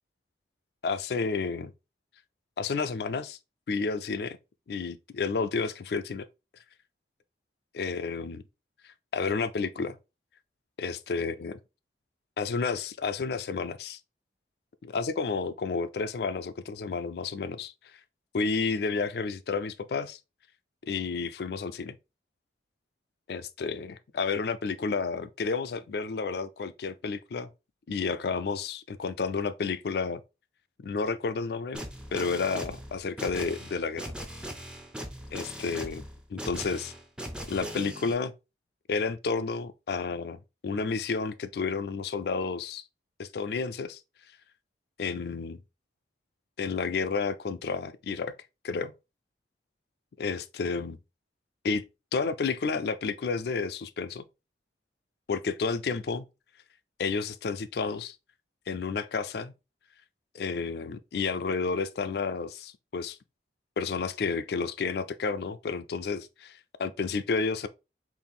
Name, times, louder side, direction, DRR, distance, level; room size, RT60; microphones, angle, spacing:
voice 1, 0.8-1.7 2.6-3.4 3.7-4.4 4.7-6.3 7.7-8.4 9.1-10.0 10.8-11.5 12.4-14.0 14.9-17.7 18.3-20.2 20.9-21.9 23.3-27.5 27.9-30.2 30.8-31.8 32.1-34.1 35.3-36.0 36.3-36.9 37.5-38.3 38.9-40.4 40.6-42.8 43.2-44.0 45.0-45.6 46.6-48.3 48.6-48.9 50.2-51.0 51.6-51.8 52.1-54.2 55.3-56.2 57.0-58.2 58.7-59.5 60.3-63.2 63.8-67.7, left 4 dB, 60° left, 0.4 m, -31 dB
sound 1, 31.7-38.1, equal, 5° right, 0.4 m, -39 dB
4.0 x 2.5 x 3.5 m
head